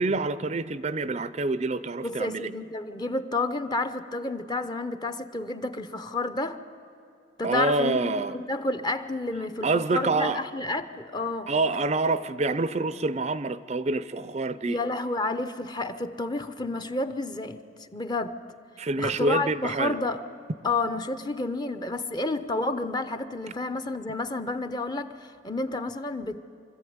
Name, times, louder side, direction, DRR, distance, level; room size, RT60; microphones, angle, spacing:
voice 1, 0.0-2.5 7.4-8.4 9.6-10.4 11.5-14.8 18.8-20.0, right 3 dB, 35° right, 15 dB, 0.5 m, -27 dB
voice 2, 2.0-6.6 7.4-11.5 14.7-18.4 19.0-20.2 20.6-26.4, left 2 dB, 25° left, 10 dB, 0.8 m, -30 dB
24.5 x 14.0 x 9.4 m, 2.8 s
head